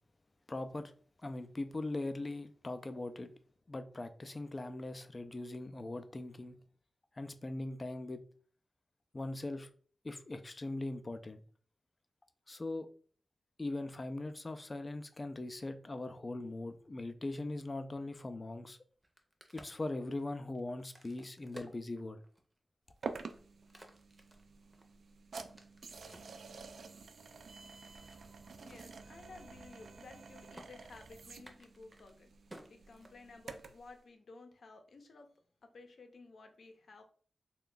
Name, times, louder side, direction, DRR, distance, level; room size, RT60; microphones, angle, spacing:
voice 1, 0.5-0.9 1.2-3.3 3.7-6.6 7.2-8.2 9.1-9.7 10.0-11.4 12.5-12.9 13.6-18.8 19.5-22.2, left 2 dB, 30° left, 0.4 m, -40 dB
Crack, 18.9-22.6 23.1-26.4 27.0-28.3 28.7-28.8 29.1-29.4 29.7-30.2 30.5-30.7 31.3-33.6, right 1 dB, 20° right, 0.6 m, -57 dB
sound 1, 23.0-33.9, right 4 dB, 80° right, 0.3 m, -49 dB
voice 2, 28.6-32.3 32.7-35.3 35.6-37.0, left 3 dB, 70° left, 0.6 m, -55 dB
3.3 x 2.3 x 3.8 m
wide cardioid pair, 105°, 0 cm